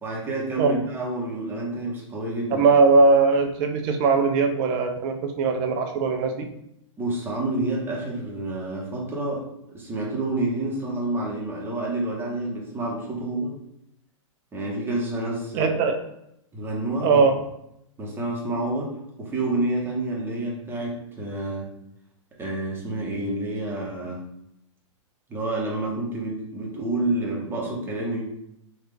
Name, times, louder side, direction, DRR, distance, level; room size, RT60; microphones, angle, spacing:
voice 1, 0.0-2.6 7.0-13.5 14.5-15.7 16.5-17.2 18.0-21.7 22.4-24.2 25.3-28.2, right 2 dB, 15° right, -3 dB, 0.9 m, -29 dB
voice 2, 2.5-6.5 15.5-15.9 17.0-17.3, right 4 dB, 40° right, 5 dB, 0.5 m, -20 dB
3.4 x 2.4 x 3.2 m, 0.80 s
hypercardioid pair, 125°, 17 cm